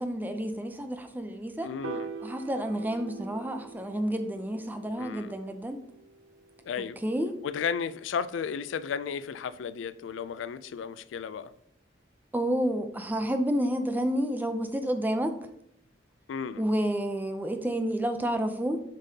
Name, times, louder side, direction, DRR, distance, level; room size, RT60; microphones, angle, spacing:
voice 1, 0.0-1.7 2.2-5.8 7.0-7.4 12.3-15.3 16.6-18.8, equal, 10° right, 0.5 m, -30 dB
voice 2, 1.6-2.1 5.0-5.4 6.6-7.0 7.4-11.5 16.3-16.6, left 6 dB, 85° left, 0.3 m, -34 dB
Piano, 1.8-8.1, right 5 dB, 80° right, 0.5 m, -45 dB
7.3 x 5.3 x 2.8 m
head